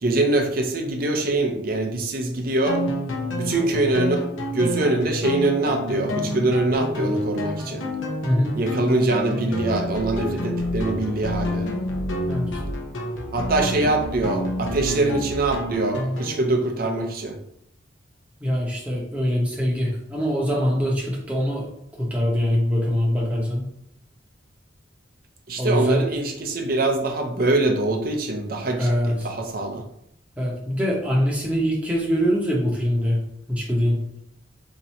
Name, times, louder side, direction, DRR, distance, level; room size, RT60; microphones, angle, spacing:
voice 1, 0.0-2.8 3.3-7.8 8.6-11.7 13.3-17.4 25.5-29.8, right 2 dB, 50° right, 3 dB, 0.5 m, -23 dB
sound 1, 2.7-16.4, left 1 dB, 80° left, 0.7 m, -28 dB
voice 2, 8.2-8.6 12.3-12.5 18.4-21.7 22.0-23.6 25.6-26.1 28.8-29.2 30.4-33.2 33.5-34.0, equal, 5° right, -4 dB, 0.8 m, -23 dB
2.9 x 2.6 x 4.2 m, 0.75 s
head